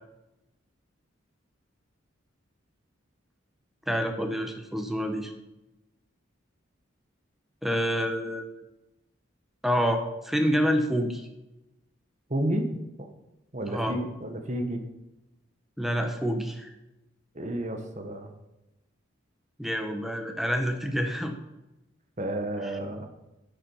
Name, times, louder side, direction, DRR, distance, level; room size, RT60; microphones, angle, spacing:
voice 1, 3.9-5.3 7.6-8.5 9.6-11.3 13.7-14.0 15.8-16.7 19.6-21.4 22.6-22.7, equal, ahead, 5 dB, 1.0 m, -27 dB
voice 2, 12.3-12.7 13.0-13.1 13.5-14.8 17.3-18.3 22.2-23.1, right 1 dB, 35° right, 6 dB, 1.3 m, -31 dB
12.0 x 7.4 x 5.6 m, 0.95 s
head